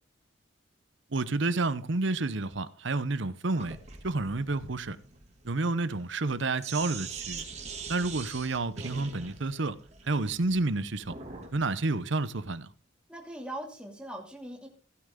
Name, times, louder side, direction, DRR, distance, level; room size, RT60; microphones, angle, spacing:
voice 1, 1.1-3.8 4.0-5.0 5.4-7.4 7.9-9.8 10.1-11.1 11.5-12.7, right 3 dB, 65° right, 0.9 m, -30 dB
Sink (filling or washing), 3.5-11.6, right 5 dB, 35° right, 2.4 m, -43 dB
voice 2, 13.1-14.7, right 1 dB, 5° right, 2.6 m, -40 dB
15.5 x 9.3 x 3.8 m
head